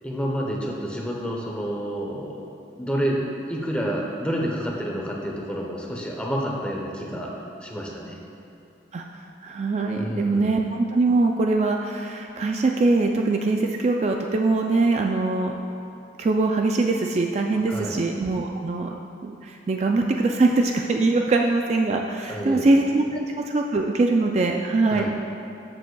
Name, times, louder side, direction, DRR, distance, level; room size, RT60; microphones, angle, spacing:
voice 1, 0.0-3.2 3.5-7.3 7.6-8.2 9.9-10.6 17.7-18.0 22.3-22.8 24.9-25.1, equal, 5° left, -2 dB, 0.9 m, -29 dB
voice 2, 9.4-15.6 16.2-18.9 19.2-25.1, right 3 dB, 35° right, 2 dB, 0.3 m, -22 dB
13.0 x 6.9 x 2.3 m, 2.7 s
head